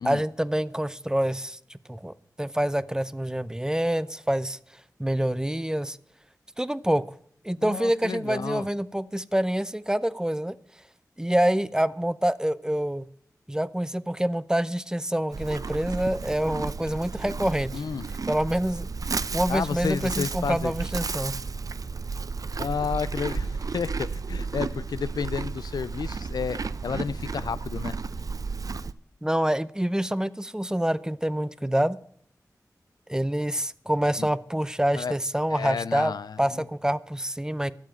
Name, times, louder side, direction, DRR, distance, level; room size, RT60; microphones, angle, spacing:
voice 1, 0.0-4.6 5.0-6.0 6.6-7.0 7.4-10.6 11.2-13.1 13.5-17.7 18.3-18.9 19.3-21.3 29.2-32.0 33.1-36.1 36.4-37.7, right 1 dB, 10° right, 0.6 m, -26 dB
voice 2, 7.6-8.7 17.7-18.1 19.5-20.7 22.6-28.0 34.2-34.3 35.0-35.2 35.5-36.6, left 6 dB, 85° left, 0.4 m, -31 dB
Livestock farm animals working animals, 15.3-28.9, right 4 dB, 60° right, 0.6 m, -33 dB
12.5 x 7.4 x 8.9 m
cardioid pair, 45°, 7 cm